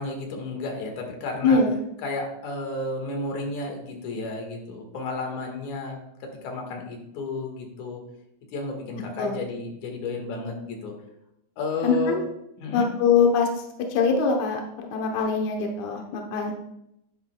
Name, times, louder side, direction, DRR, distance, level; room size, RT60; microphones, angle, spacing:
voice 1, 0.0-1.6 2.0-6.0 6.4-8.0 8.5-10.9 11.6-12.2 12.6-12.9, left 3 dB, 55° left, 2 dB, 2.7 m, -32 dB
voice 2, 1.4-1.8 9.2-9.4 11.8-12.2 12.7-13.5 13.9-16.5, left 4 dB, 75° left, 2 dB, 1.7 m, -23 dB
11.0 x 11.0 x 2.3 m, 0.82 s
omnidirectional pair, 4.6 m